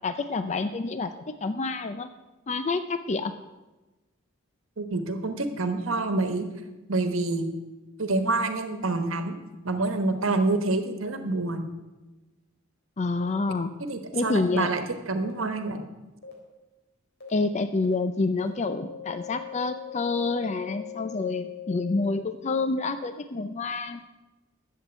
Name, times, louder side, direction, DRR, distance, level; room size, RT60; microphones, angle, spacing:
voice 1, 0.0-2.1 2.5-3.3 13.0-13.7 14.1-14.7 17.3-24.0, left 3 dB, 35° left, 10 dB, 0.5 m, -28 dB
voice 2, 4.8-6.4 6.9-7.6 8.0-9.4 9.6-11.7 13.9-15.8, right 2 dB, 75° right, 8 dB, 1.3 m, -27 dB
sound 1, 13.2-13.3 14.2-14.3 15.2-15.3 16.2-16.3 17.2-17.3 17.8-17.9 18.4-18.5 18.9-22.0, left 11 dB, 55° left, 3.6 m, -40 dB
11.5 x 7.8 x 8.1 m, 1.1 s
head